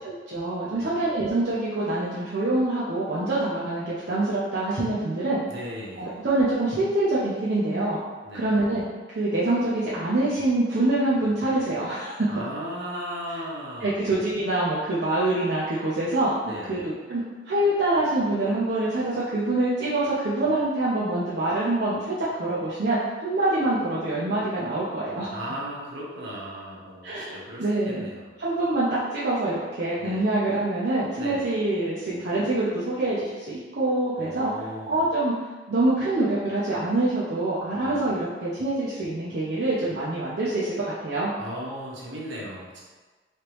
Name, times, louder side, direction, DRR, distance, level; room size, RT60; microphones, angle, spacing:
voice 1, 0.0-5.4 6.0-8.0 8.3-8.8 9.1-12.1 13.8-25.3 27.0-27.3 27.6-28.1 28.4-35.4 35.7-41.3, right 2 dB, 60° right, -8 dB, 0.6 m, -25 dB
voice 2, 5.5-6.3 8.2-8.7 12.3-13.9 16.4-16.8 25.3-28.4 30.0-30.3 31.2-31.5 34.2-35.0 37.8-38.1 41.4-42.8, equal, 75° right, -5 dB, 0.9 m, -37 dB
3.2 x 3.0 x 3.0 m, 1.3 s
head